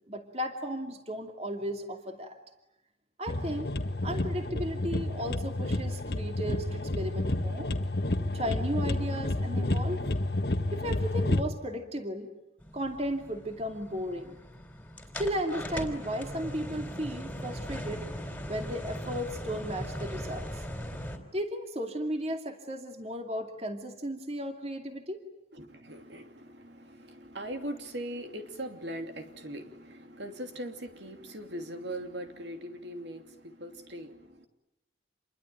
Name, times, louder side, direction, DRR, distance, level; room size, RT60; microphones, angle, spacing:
voice 1, 0.1-2.4 3.2-3.7 4.0-7.7 8.3-10.1 10.7-12.3 12.7-14.4 15.2-18.1 18.5-20.6 21.3-25.2, equal, 35° right, 5 dB, 2.5 m, -35 dB
sound 1, 3.3-11.4, left 1 dB, 55° left, 1.4 m, -30 dB
Heavy Winds In February, 12.6-21.2, equal, 5° left, 3.4 m, -39 dB
voice 2, 25.5-34.5, right 1 dB, 65° right, 6 dB, 2.8 m, -40 dB
28.0 x 23.0 x 9.3 m, 0.92 s
head